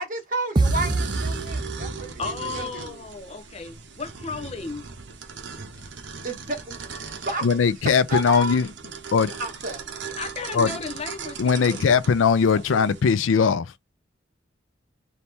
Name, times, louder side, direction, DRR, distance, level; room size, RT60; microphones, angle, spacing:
voice 1, 0.0-3.0 6.2-6.7 7.1-7.7 8.1-8.6 9.4-9.8, right 1 dB, 45° right, 1.4 m, -31 dB
sound 1, 0.6-2.4, right 2 dB, 25° right, 0.5 m, -25 dB
sound 2, 0.6-13.0, right 5 dB, 65° right, 0.9 m, -38 dB
voice 2, 2.2-4.9 10.1-11.8 12.7-12.8, left 4 dB, 30° left, 0.6 m, -34 dB
voice 3, 7.4-8.7 9.1-9.3 10.5-10.7 11.4-13.7, left 5 dB, 90° left, 0.4 m, -20 dB
4.2 x 2.8 x 3.5 m
head